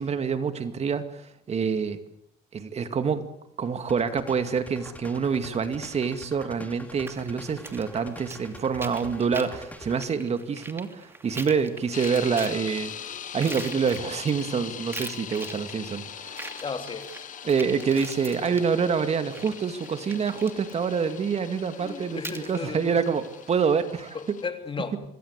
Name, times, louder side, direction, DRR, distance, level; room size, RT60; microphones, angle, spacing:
voice 1, 0.0-2.0 2.5-3.3 3.6-16.5 17.4-24.4, right 6 dB, 40° right, 2.3 m, -27 dB
sound 1, 3.9-10.1, left 1 dB, 10° left, 2.7 m, -46 dB
sound 2, 7.1-23.8, right 2 dB, 15° right, 2.7 m, -44 dB
sound 3, 11.9-24.5, left 9 dB, 50° left, 1.3 m, -41 dB
voice 2, 16.6-17.4 21.8-23.0 24.1-25.0, left 4 dB, 30° left, 3.5 m, -35 dB
26.5 x 22.5 x 8.3 m
cardioid pair, 110°, 17 cm